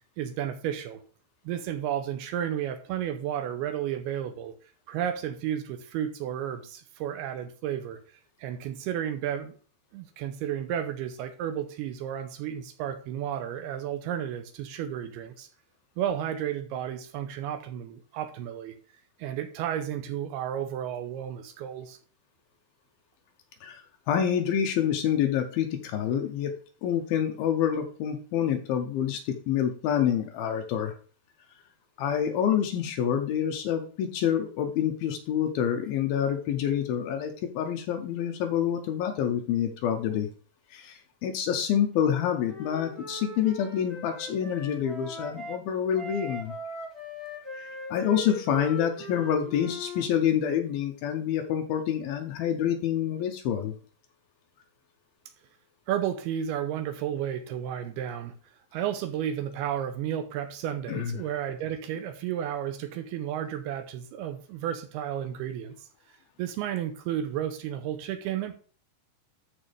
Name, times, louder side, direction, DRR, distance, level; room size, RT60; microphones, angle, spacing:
voice 1, 0.2-1.0 1.5-4.6 4.9-8.0 8.4-9.6 9.9-15.5 16.0-18.8 19.2-22.0 55.9-58.3 58.7-65.8 66.4-68.5, right 10 dB, 80° right, 8 dB, 2.5 m, -32 dB
voice 2, 23.6-26.5 26.8-30.9 32.0-40.3 40.7-46.6 47.5-53.7 60.9-61.2, left 9 dB, 75° left, 5 dB, 2.4 m, -27 dB
Wind instrument woodwind instrument, 42.0-45.6 45.9-50.1, left 1 dB, ahead, 2.9 m, -40 dB
13.0 x 4.6 x 3.4 m, 0.41 s
omnidirectional pair, 4.9 m